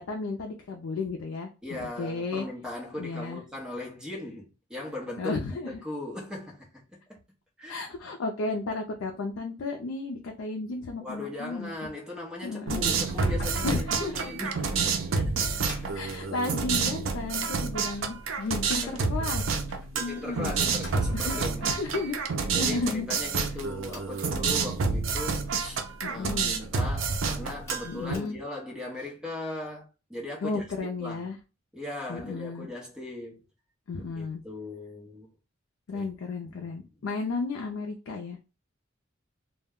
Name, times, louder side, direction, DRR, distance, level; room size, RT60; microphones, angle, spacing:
voice 1, 0.0-2.5 3.0-3.4 5.2-5.8 7.7-11.7 12.4-12.8 13.6-14.4 15.9-19.6 20.0-20.5 21.1-23.1 26.0-26.6 27.8-28.4 30.4-31.4 32.1-32.7 33.9-34.4 35.9-38.5, left 3 dB, 85° left, 0.4 m, -33 dB
voice 2, 1.6-5.3 5.7-7.2 7.6-7.8 11.0-16.0 18.5-19.3 19.9-21.7 22.4-30.6 31.0-31.3 31.7-33.5 34.0-35.3 35.9-36.1 36.4-36.8, left 1 dB, 5° right, 0.8 m, -39 dB
sound 1, 12.7-28.1, right 4 dB, 70° right, 0.5 m, -29 dB
sound 2, 13.1-17.0 17.6-20.3 20.6-21.4, equal, 60° left, 0.9 m, -44 dB
sound 3, 23.9-24.2 25.3-25.5 27.6-28.3, left 1 dB, 15° left, 1.2 m, -49 dB
2.2 x 2.1 x 3.5 m
head